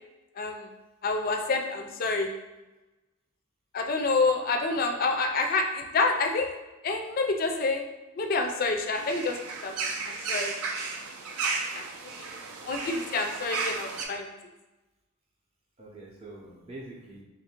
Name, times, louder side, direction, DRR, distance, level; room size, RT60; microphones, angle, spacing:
voice 1, 0.4-0.7 1.0-2.3 3.7-6.5 6.8-7.8 8.2-9.8 10.1-10.5 11.7-11.8 12.2-12.3 12.7-14.3, left 3 dB, 40° left, 4 dB, 0.3 m, -28 dB
sound 1, 8.9-14.0, right 4 dB, 90° right, 0.5 m, -34 dB
voice 2, 12.3-12.7 15.8-17.2, right 2 dB, 25° right, -4 dB, 0.6 m, -45 dB
3.0 x 2.5 x 4.3 m, 1.1 s
head